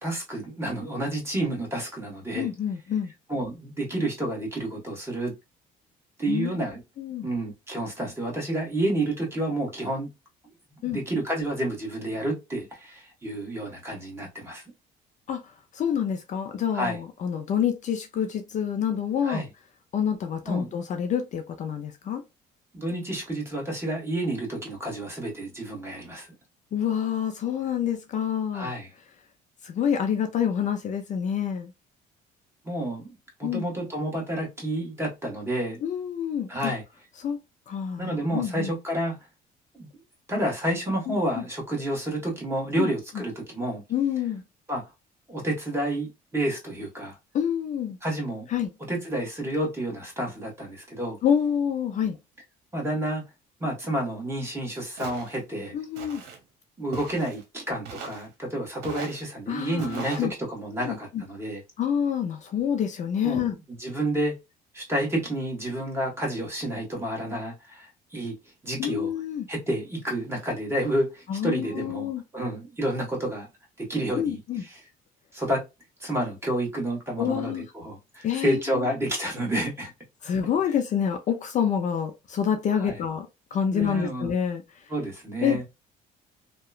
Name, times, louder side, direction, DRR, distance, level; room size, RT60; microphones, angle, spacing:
voice 1, 0.0-2.5 3.3-5.3 6.2-6.8 7.2-10.1 10.7-14.6 16.7-17.0 19.2-19.4 20.5-20.7 22.7-26.3 28.5-28.9 32.6-33.1 33.4-35.8 36.5-36.8 38.0-39.2 39.7-39.9 40.3-43.8 44.7-44.8 45.3-47.2 48.0-48.5 48.9-51.2 52.7-53.2 53.6-55.8 56.8-61.6 63.2-63.5 63.8-64.3 64.7-68.3 68.6-69.1 69.5-73.5 73.8-74.4 75.3-75.6 76.0-79.9 82.8-82.9 83.7-84.3 84.9-85.6, right 1 dB, 15° right, 1.4 m, -30 dB
voice 2, 2.3-3.1 6.3-6.5 7.0-7.3 10.8-11.0 15.3-19.4 19.9-22.2 26.7-28.7 29.6-31.7 33.4-33.7 35.8-36.7 37.2-37.4 37.7-38.7 41.1-41.4 42.8-43.2 43.9-44.4 47.3-48.0 48.5-48.7 51.2-52.2 55.7-56.2 59.5-60.3 60.8-61.2 61.8-63.6 68.8-69.5 71.3-72.2 74.1-74.6 77.2-77.7 78.2-78.9 80.2-84.9 85.4-85.6, left 8 dB, 45° left, 0.4 m, -27 dB
Walk footsteps, 55.0-55.4 56.0-56.4 56.9-57.4 57.9-58.3 58.8-59.2 59.8-60.3, right 6 dB, 85° right, 0.9 m, -39 dB
2.8 x 2.2 x 2.3 m
cardioid pair, 110°, 17 cm